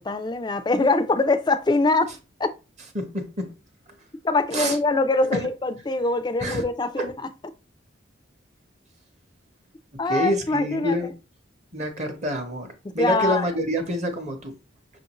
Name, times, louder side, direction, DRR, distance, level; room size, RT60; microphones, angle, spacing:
voice 1, 0.0-2.1 2.4-2.5 4.2-7.2 10.0-11.1 12.8-13.4, left 3 dB, 20° left, 0.3 m, -23 dB
voice 2, 2.9-3.5 4.5-4.8 5.2-5.5 6.4-6.6 7.0-7.1 9.9-11.1 11.7-14.6, equal, 35° right, 0.7 m, -27 dB
5.8 x 2.5 x 2.9 m
head